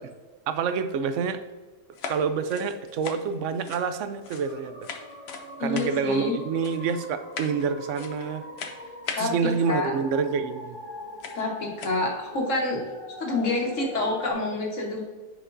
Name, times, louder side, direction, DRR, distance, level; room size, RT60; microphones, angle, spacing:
voice 1, 0.5-1.4 2.1-4.7 5.6-8.5 9.2-10.8, right 6 dB, 85° right, 10 dB, 0.9 m, -27 dB
sound 1, 1.9-4.6 4.8-5.4 5.7-6.2 6.6-7.0 7.3-7.7 7.9-8.3 8.6-9.3 10.5-10.6 11.2-11.4 11.7-12.0, left 5 dB, 65° left, 0.9 m, -38 dB
sound 2, 4.4-14.3, left 1 dB, 25° left, 1.6 m, -43 dB
voice 2, 5.6-6.4 9.1-9.9 11.3-12.8 13.2-15.0, left 2 dB, 85° left, 0 dB, 1.7 m, -28 dB
9.7 x 5.1 x 2.6 m, 1.3 s
omnidirectional pair, 1.2 m